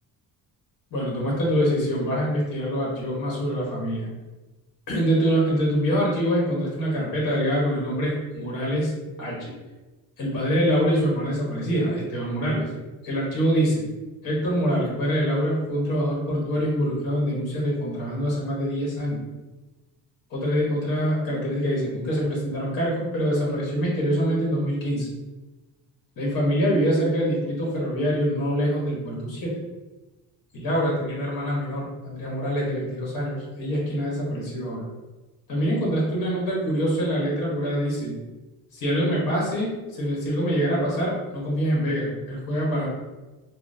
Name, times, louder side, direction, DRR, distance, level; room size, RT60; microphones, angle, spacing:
voice 1, 0.9-4.1 4.9-9.5 10.2-12.7 13.0-13.9 14.2-19.2 20.3-25.1 26.2-29.6 30.5-34.9 35.5-38.2 38.7-42.9, equal, 60° left, -4 dB, 1.1 m, -25 dB
3.6 x 2.1 x 2.6 m, 1.1 s
cardioid pair, 145°, 37 cm